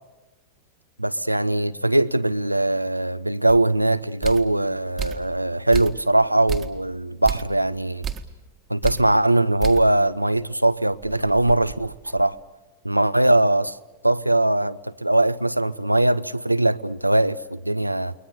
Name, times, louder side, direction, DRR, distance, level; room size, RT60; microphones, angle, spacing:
voice 1, 1.0-8.1 8.7-12.4 12.8-13.8 14.0-18.1, right 1 dB, 85° right, 0.7 m, -21 dB
sound 1, 3.5-3.6 4.2-4.6 5.0-5.3 5.7-6.1 6.5-6.8 7.2-7.6 8.0-8.4 8.8-9.1 9.6-9.9 10.3-10.4 10.9-12.4, right 8 dB, 25° right, 1.7 m, -32 dB
29.5 x 22.0 x 6.8 m
figure-of-eight pair, 90°, 0 cm